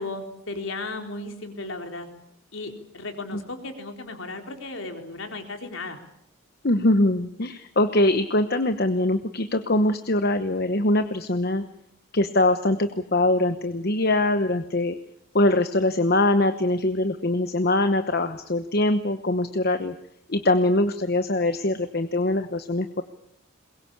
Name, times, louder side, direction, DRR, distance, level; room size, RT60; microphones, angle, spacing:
voice 1, 0.0-2.1 2.5-6.0, left 2 dB, 65° left, 4 dB, 3.9 m, -35 dB
voice 2, 6.6-11.6 12.1-15.0 15.3-19.9 20.3-23.0, left 1 dB, 45° left, 9 dB, 1.0 m, -23 dB
22.5 x 22.0 x 8.6 m, 0.80 s
head